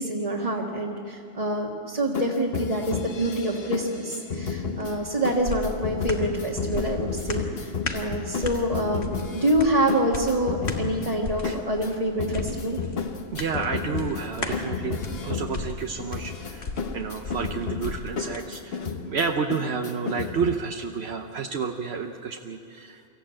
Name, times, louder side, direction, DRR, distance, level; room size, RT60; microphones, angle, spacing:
voice 1, 0.0-12.8, right 1 dB, 35° right, -3 dB, 1.7 m, -26 dB
sound 1, 2.1-20.5, left 5 dB, 65° left, 1.4 m, -33 dB
sound 2, 4.8-18.5 18.9-19.0, left 3 dB, 90° left, 1.9 m, -37 dB
voice 2, 13.3-18.8 19.1-23.1, right 5 dB, 80° right, 4 dB, 1.1 m, -30 dB
24.5 x 15.0 x 8.8 m, 2.7 s
omnidirectional pair, 1.1 m